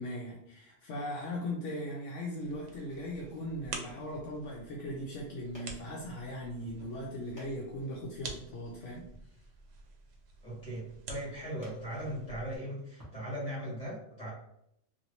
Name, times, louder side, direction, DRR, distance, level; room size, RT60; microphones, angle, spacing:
voice 1, 0.0-9.1, left 1 dB, 75° left, -3 dB, 1.0 m, -39 dB
sound 1, 2.4-12.6, right 3 dB, 75° right, 0.9 m, -49 dB
sound 2, 4.7-13.2, left 1 dB, 15° left, 1.0 m, -59 dB
voice 2, 10.4-14.3, right 1 dB, 35° left, -6 dB, 1.6 m, -39 dB
2.9 x 2.7 x 2.9 m, 0.78 s
omnidirectional pair, 1.3 m